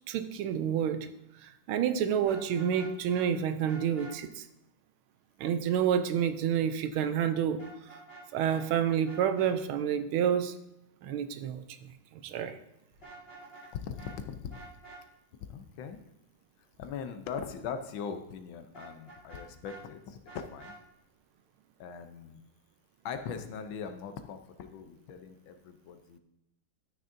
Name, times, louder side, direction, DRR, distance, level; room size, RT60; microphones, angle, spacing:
voice 1, 0.1-1.1 1.4-4.4 5.4-7.6 8.3-10.5 11.0-11.6 12.1-12.6, right 8 dB, 85° right, 10 dB, 1.5 m, -29 dB
Vehicle horn car horn honking, 2.2-3.3 3.6-4.1 7.6-8.2 8.5-8.6 9.0-9.5 12.9-13.7 14.0-14.1 14.5-15.0 18.7-19.8 20.2-20.8, right 2 dB, 25° left, 3.1 m, -48 dB
voice 2, 13.7-14.6 15.5-16.0 16.8-20.7 21.8-22.4 23.0-26.2, left 6 dB, 75° left, 8 dB, 1.4 m, -40 dB
13.0 x 6.3 x 2.6 m, 0.83 s
omnidirectional pair, 2.3 m